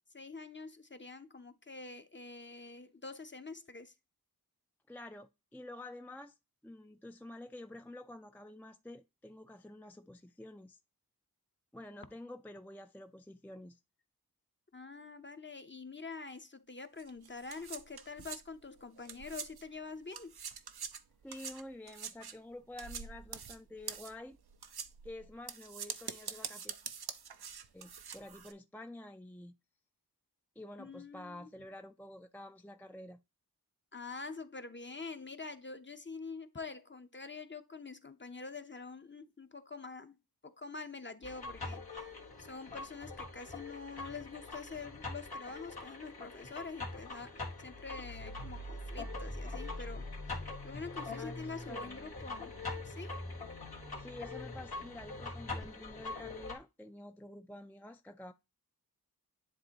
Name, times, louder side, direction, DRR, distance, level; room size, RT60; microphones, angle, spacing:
voice 1, 0.1-3.9 14.7-20.3 30.8-31.5 33.9-40.2 40.4-42.1 42.4-50.1 50.6-52.5 52.8-53.2, left 4 dB, 30° left, 0.8 m, -46 dB
voice 2, 4.9-6.3 6.6-10.8 11.7-13.8 21.2-24.4 25.0-26.7 27.7-29.5 30.6-33.2 51.2-52.4 54.0-58.3, left 1 dB, 5° left, 0.4 m, -49 dB
sound 1, 17.0-19.8 20.1-28.5, right 7 dB, 90° right, 0.6 m, -45 dB
sound 2, 41.2-56.6, left 2 dB, 90° left, 2.0 m, -43 dB
10.5 x 3.5 x 2.8 m
wide cardioid pair, 60°, 37 cm